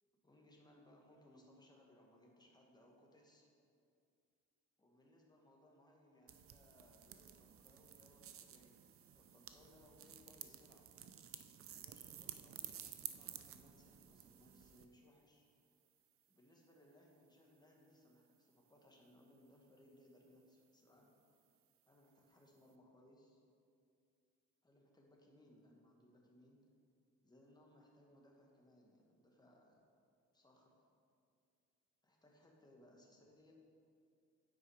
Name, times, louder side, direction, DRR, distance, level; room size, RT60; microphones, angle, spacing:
voice 1, 0.0-3.5 4.8-10.9 11.7-15.5 16.3-21.1 21.9-23.4 24.6-26.6 27.2-29.8 30.3-30.8 32.0-33.5, left 1 dB, 15° left, -1 dB, 1.4 m, -66 dB
sound 1, 6.3-14.9, right 9 dB, 50° right, 0.5 m, -53 dB
8.7 x 4.7 x 4.8 m, 2.4 s
cardioid pair, 90°, 30 cm